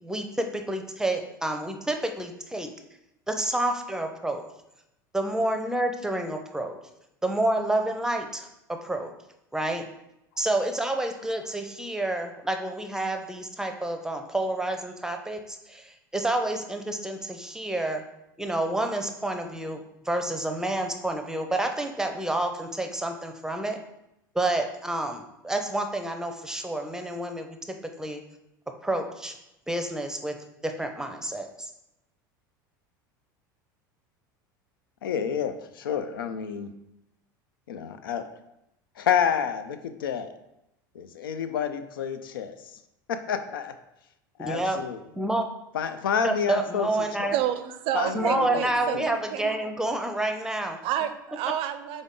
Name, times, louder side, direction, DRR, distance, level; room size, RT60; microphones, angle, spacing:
voice 1, 0.0-2.7 3.3-4.4 5.1-6.8 7.2-9.1 9.5-9.8 10.4-18.0 18.4-19.8 20.0-23.8 24.3-27.6 28.0-28.2 28.8-29.3 29.7-30.4 30.6-31.7 44.4-44.8 45.2-45.5 46.2-47.4 48.1-50.8, right 1 dB, 5° right, 5 dB, 0.6 m, -29 dB
voice 2, 35.0-36.7 37.7-38.3 39.0-40.3 40.9-42.8 43.1-43.7 44.4-45.0 45.7-47.3 47.9-48.7 48.9-49.1, left 7 dB, 85° left, 10 dB, 0.4 m, -29 dB
voice 3, 47.3-49.7 50.8-52.0, right 10 dB, 55° right, 10 dB, 0.5 m, -29 dB
3.8 x 3.5 x 3.7 m, 0.86 s
hypercardioid pair, 85°, 11 cm